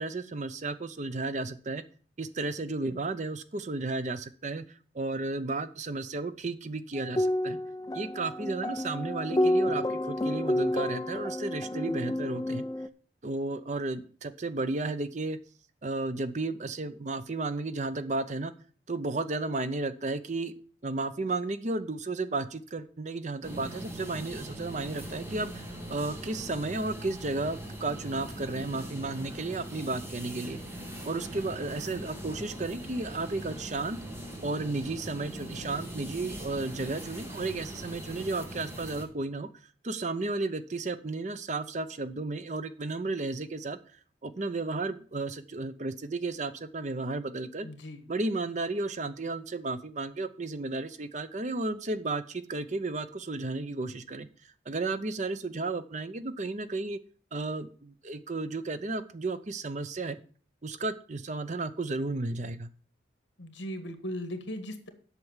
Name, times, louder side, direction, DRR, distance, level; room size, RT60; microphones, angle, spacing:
voice 1, 0.0-1.8 2.2-7.6 7.9-12.6 13.2-15.4 15.8-18.5 18.9-20.5 20.8-30.6 31.0-34.0 34.4-39.5 39.8-43.8 44.2-47.7 48.1-54.3 54.7-57.0 57.3-60.2 60.6-62.7, right 3 dB, 40° right, 12 dB, 0.6 m, -33 dB
sound 1, 7.0-12.9, left 1 dB, 20° left, 0.4 m, -30 dB
sound 2, 23.4-39.1, right 1 dB, 15° right, 1.4 m, -41 dB
voice 2, 47.6-48.0 63.4-64.9, equal, 70° left, 8 dB, 1.6 m, -38 dB
8.0 x 5.9 x 7.2 m, 0.41 s
head